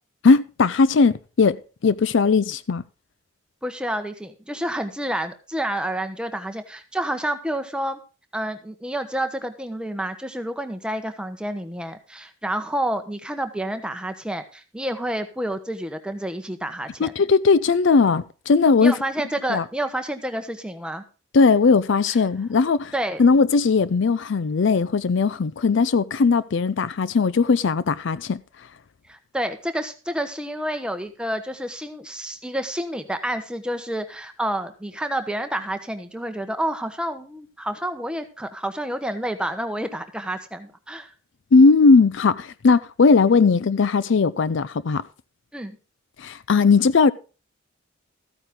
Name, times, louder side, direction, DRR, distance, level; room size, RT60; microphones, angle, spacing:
voice 1, 0.2-2.8 17.0-18.9 19.5-19.6 21.3-22.9 23.2-28.4 41.5-45.0 46.2-47.1, left 4 dB, 60° left, 0.4 m, -18 dB
voice 2, 3.6-8.0 8.3-17.1 18.8-21.0 22.9-23.2 29.1-41.1 45.5-45.8, right 1 dB, 5° right, 1.0 m, -29 dB
14.0 x 9.1 x 3.7 m
head